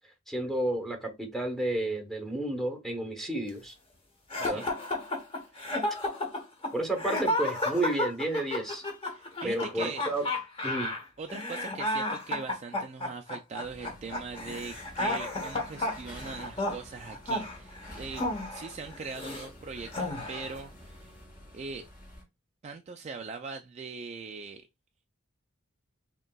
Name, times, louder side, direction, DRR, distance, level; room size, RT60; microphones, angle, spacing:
voice 1, 0.3-3.7 4.4-4.7 6.7-8.8 9.4-10.2 10.6-10.9, right 1 dB, ahead, 0.9 m, -31 dB
sound 1, 4.3-19.5 19.9-20.6, left 1 dB, 25° left, 0.9 m, -32 dB
voice 2, 9.1-10.1 11.2-21.1 21.5-21.9 22.6-24.7, right 4 dB, 30° right, 0.3 m, -41 dB
sound 2, 13.6-22.2, left 1 dB, 50° left, 2.5 m, -49 dB
5.1 x 2.9 x 2.3 m
head